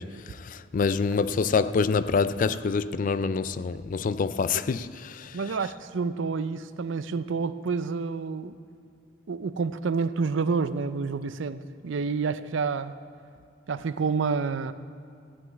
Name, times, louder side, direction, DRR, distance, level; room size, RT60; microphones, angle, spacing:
voice 1, 0.0-5.6, left 5 dB, 45° left, 0.3 m, -26 dB
voice 2, 5.3-8.6 9.3-13.0 13.7-14.7, right 5 dB, 70° right, 0.5 m, -29 dB
15.0 x 6.2 x 9.3 m
head